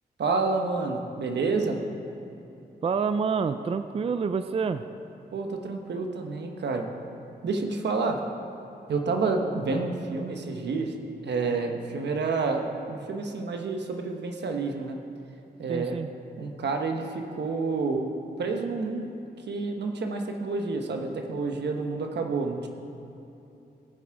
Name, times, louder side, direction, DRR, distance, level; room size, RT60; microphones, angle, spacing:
voice 1, 0.2-1.8 5.3-6.9 7.4-8.2 8.9-10.9 11.2-15.0 15.6-16.0 16.4-18.1 18.4-19.1 19.5-22.7, right 4 dB, 85° right, 3 dB, 1.1 m, -29 dB
voice 2, 2.8-4.9 15.7-16.1, right 5 dB, 35° right, 10 dB, 0.4 m, -27 dB
18.0 x 6.0 x 4.7 m, 2.9 s
wide cardioid pair, 95°, 17 cm